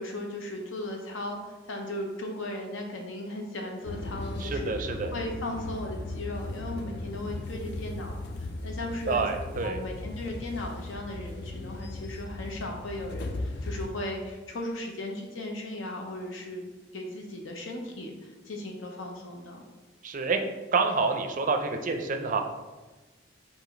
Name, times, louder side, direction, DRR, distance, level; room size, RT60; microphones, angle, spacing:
voice 1, 0.0-9.3 9.6-16.7 16.9-19.6, left 1 dB, 85° left, 2 dB, 0.8 m, -37 dB
sound 1, 3.8-13.9, left 2 dB, 60° left, 0.4 m, -37 dB
voice 2, 4.4-5.1 9.1-9.8 20.0-20.4 20.7-22.4, right 4 dB, 45° right, 5 dB, 0.4 m, -28 dB
4.9 x 2.7 x 3.8 m, 1.2 s
head